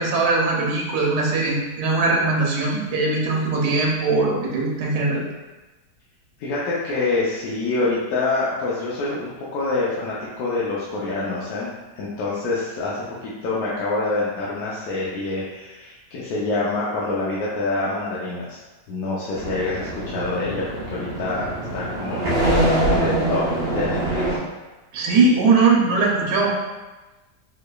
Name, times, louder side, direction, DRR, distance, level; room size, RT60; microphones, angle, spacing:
voice 1, 0.0-5.2 24.9-26.5, right 3 dB, 75° right, -2 dB, 1.3 m, -20 dB
voice 2, 6.4-18.6 18.9-22.3 22.9-24.2, left 3 dB, 70° left, -7 dB, 1.0 m, -26 dB
sound 1, 19.3-24.4, right 1 dB, 45° right, 0.8 m, -24 dB
3.9 x 3.1 x 2.3 m, 1.1 s
omnidirectional pair, 1.8 m